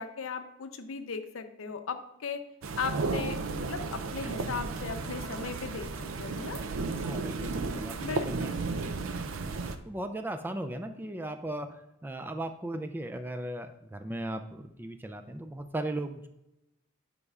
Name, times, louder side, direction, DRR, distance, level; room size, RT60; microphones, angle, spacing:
voice 1, 0.0-2.4 2.8-5.9 6.2-6.6 8.0-8.6, left 5 dB, 80° left, 8 dB, 0.6 m, -37 dB
sound 1, 2.6-9.8, right 3 dB, 75° right, 0.5 m, -34 dB
voice 2, 7.0-8.5 8.8-8.9 9.9-16.3, right 1 dB, 10° right, 7 dB, 0.3 m, -37 dB
9.7 x 5.3 x 2.4 m, 0.90 s
head